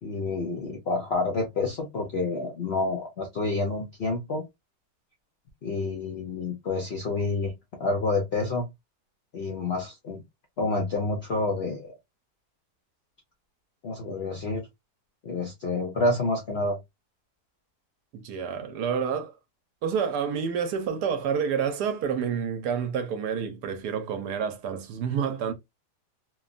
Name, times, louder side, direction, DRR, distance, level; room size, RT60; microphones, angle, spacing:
voice 1, 0.0-4.4 5.6-7.5 7.8-8.7 9.3-10.2 10.6-11.9 13.8-14.7 15.2-16.8, left 3 dB, 65° left, 0.6 m, -28 dB
voice 2, 18.1-19.4 19.8-25.5, right 7 dB, 75° right, 1.2 m, -29 dB
3.1 x 2.2 x 2.4 m
omnidirectional pair, 1.8 m